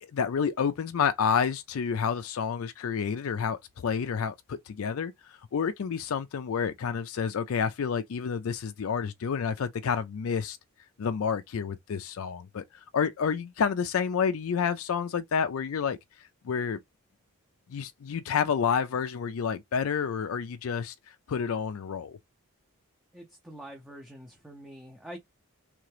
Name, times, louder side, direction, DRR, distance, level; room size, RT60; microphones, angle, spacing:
voice 1, 0.0-10.6 11.0-16.8 17.7-22.2, left 6 dB, 70° left, 0.4 m, -29 dB
voice 2, 23.1-25.2, right 1 dB, 5° right, 0.6 m, -45 dB
3.7 x 3.3 x 3.3 m
head